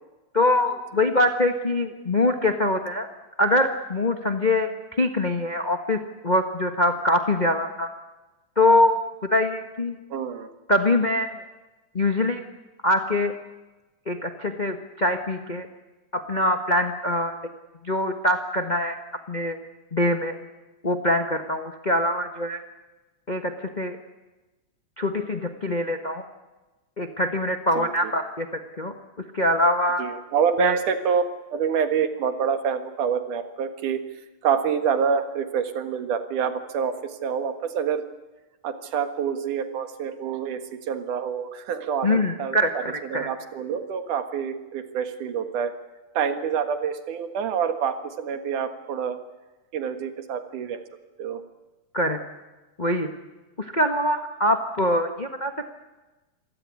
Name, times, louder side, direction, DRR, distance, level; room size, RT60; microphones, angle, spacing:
voice 1, 0.3-3.1 3.4-4.7 5.0-7.9 8.6-9.0 9.3-10.0 10.7-11.4 11.9-12.4 12.8-13.3 14.1-15.7 16.1-17.4 17.8-19.0 19.3-19.6 19.9-20.3 20.8-22.6 23.3-24.0 25.0-26.2 27.0-28.5 28.8-28.9 29.3-30.0 30.6-30.8 42.0-43.3 51.9-52.2 52.8-53.1 53.6-55.7, left 1 dB, 45° left, 6 dB, 0.5 m, -23 dB
voice 2, 10.1-10.5 27.7-28.1 30.0-31.2 31.5-34.1 34.4-38.0 38.6-45.7 46.1-49.2 49.7-50.8 51.2-51.4, right 7 dB, 85° right, 9 dB, 3.2 m, -27 dB
26.5 x 17.0 x 9.8 m, 1.1 s
omnidirectional pair, 3.5 m